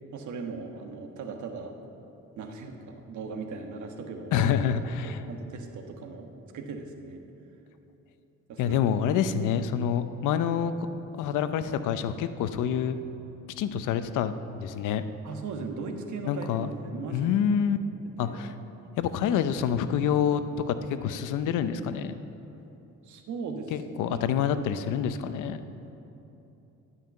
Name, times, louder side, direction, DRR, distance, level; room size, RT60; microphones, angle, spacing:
voice 1, 0.1-1.7 2.4-4.5 5.0-7.2 8.5-8.8 15.2-17.4 18.2-18.4 23.0-23.7 24.0-24.2, right 4 dB, 75° right, 4 dB, 1.3 m, -38 dB
voice 2, 4.3-5.2 8.6-10.7 11.2-13.0 13.6-15.0 16.3-16.7 17.1-17.8 18.2-18.5 19.0-20.4 20.7-20.8 21.0-22.1 23.7-25.6, left 8 dB, 90° left, 11 dB, 0.6 m, -27 dB
11.5 x 5.6 x 8.9 m, 2.9 s
cardioid pair, 90°, 30 cm